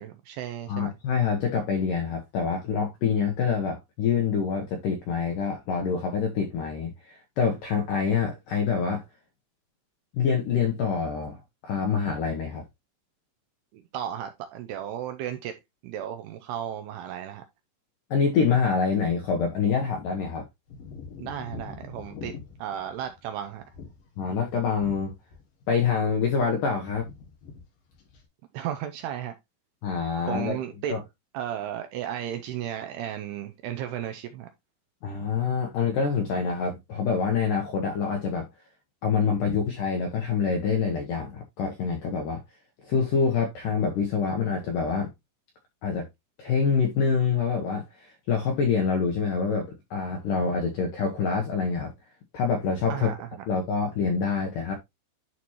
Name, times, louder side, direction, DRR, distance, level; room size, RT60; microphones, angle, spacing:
voice 1, 0.0-0.9 13.7-15.6 15.8-17.4 21.2-22.3 22.6-23.6 28.5-29.4 30.3-31.0 31.3-34.5 52.9-53.2, right 10 dB, 85° right, 2.4 m, -34 dB
voice 2, 0.7-9.0 10.1-12.6 18.1-20.5 24.2-25.1 25.7-27.1 29.8-30.6 30.9-31.0 35.0-38.5 39.0-42.4 42.8-45.1 45.8-46.0 46.4-51.9 52.3-53.1 53.5-54.7, left 6 dB, 80° left, 1.9 m, -26 dB
sound 1, 20.7-25.6 25.9-26.6 26.8-27.6 27.9-28.3, left 5 dB, 55° left, 3.5 m, -44 dB
11.0 x 4.3 x 3.0 m
omnidirectional pair, 5.3 m